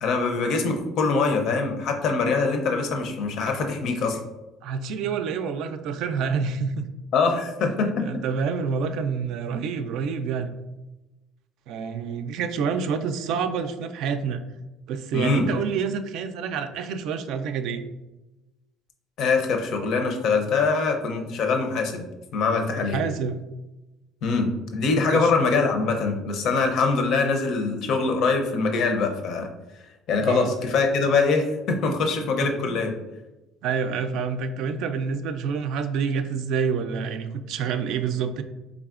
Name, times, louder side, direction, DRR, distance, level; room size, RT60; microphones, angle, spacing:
voice 1, 0.0-4.2 7.1-8.1 15.1-15.4 19.2-22.0 22.3-23.0 24.2-29.5 30.1-32.9, left 4 dB, 60° left, 4 dB, 0.6 m, -23 dB
voice 2, 4.6-6.9 7.3-10.6 11.7-14.4 14.9-17.8 22.8-23.4 25.1-25.3 30.3-30.5 32.4-32.8 33.6-38.4, right 6 dB, 70° right, 8 dB, 0.3 m, -28 dB
4.0 x 3.5 x 2.4 m, 1.0 s
cardioid pair, 120°, 0 cm